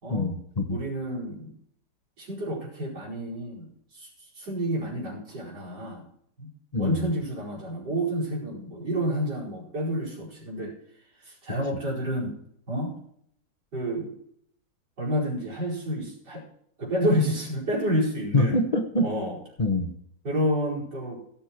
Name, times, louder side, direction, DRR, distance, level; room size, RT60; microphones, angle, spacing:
voice 1, 0.1-0.8 6.7-7.0 18.3-19.1 19.6-19.9, left 2 dB, 25° left, 3 dB, 1.1 m, -25 dB
voice 2, 0.7-1.5 2.2-6.0 6.4-6.5 6.8-10.7 11.2-12.4 12.7-13.0 13.7-14.1 15.0-16.4 16.8-18.6 19.0-19.4 20.2-21.2, equal, 80° right, -5 dB, 5.5 m, -29 dB
17.5 x 7.5 x 4.6 m, 0.69 s
omnidirectional pair, 1.8 m